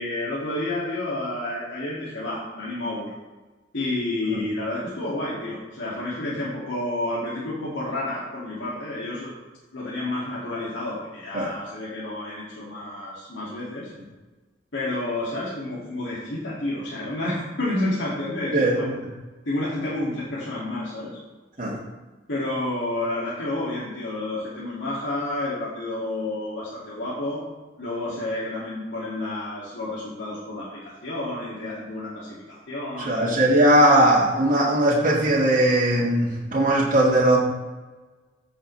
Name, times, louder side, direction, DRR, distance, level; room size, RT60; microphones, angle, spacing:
voice 1, 0.0-3.1 3.7-9.3 9.7-13.9 14.7-18.8 19.5-21.1 22.3-27.4 27.8-33.5, left 2 dB, 85° left, -8 dB, 2.2 m, -30 dB
voice 2, 18.5-19.0 21.6-21.8 33.0-37.4, right 1 dB, 45° right, -5 dB, 1.8 m, -19 dB
14.5 x 6.3 x 3.2 m, 1.2 s
head